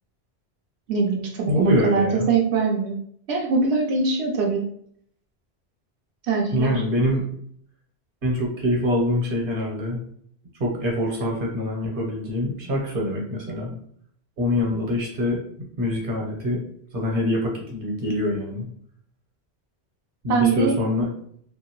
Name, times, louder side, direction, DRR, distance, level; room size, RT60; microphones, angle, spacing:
voice 1, 0.9-3.0 3.3-4.6 6.3-6.7 14.7-14.8 20.3-20.8, right 4 dB, 80° right, -1 dB, 1.0 m, -22 dB
voice 2, 1.5-2.3 6.5-7.2 8.2-10.0 10.6-13.7 14.4-15.4 15.8-16.6 16.9-18.7 20.2-21.1, left 1 dB, 55° right, -2 dB, 1.1 m, -24 dB
2.8 x 2.6 x 2.9 m, 0.64 s
omnidirectional pair, 1.1 m